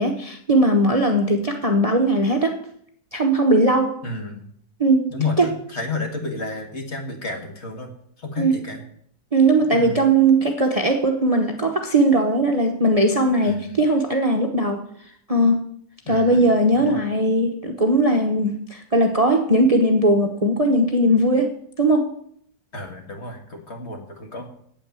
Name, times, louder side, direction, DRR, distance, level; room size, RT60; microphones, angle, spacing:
voice 1, 0.0-2.6 3.1-4.0 4.8-5.1 5.4-5.5 8.4-8.5 9.3-14.8 15.3-15.6 16.1-21.5 21.8-22.1, right 1 dB, 30° right, 3 dB, 0.8 m, -19 dB
voice 2, 4.0-4.5 5.1-7.9 8.2-8.8 9.7-10.1 13.4-13.8 16.1-17.1 22.7-24.5, left 3 dB, 45° left, 3 dB, 2.0 m, -31 dB
8.9 x 7.5 x 8.8 m, 0.67 s
omnidirectional pair, 1.6 m